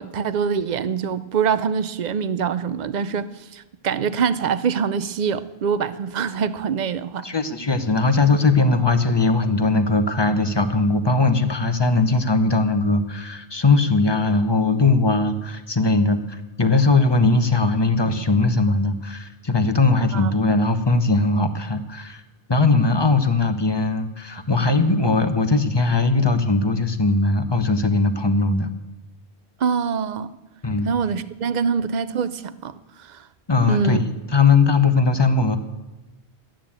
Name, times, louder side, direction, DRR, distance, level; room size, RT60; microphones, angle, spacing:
voice 1, 0.0-7.2 20.1-20.3 29.6-30.3 30.8-32.8 33.0-33.2 33.7-34.0, right 6 dB, 50° right, 0.6 m, -24 dB
voice 2, 7.2-22.2 22.5-28.7 30.6-30.9 33.5-35.6, left 3 dB, 25° left, 0.9 m, -19 dB
12.5 x 8.9 x 8.7 m
omnidirectional pair, 1.1 m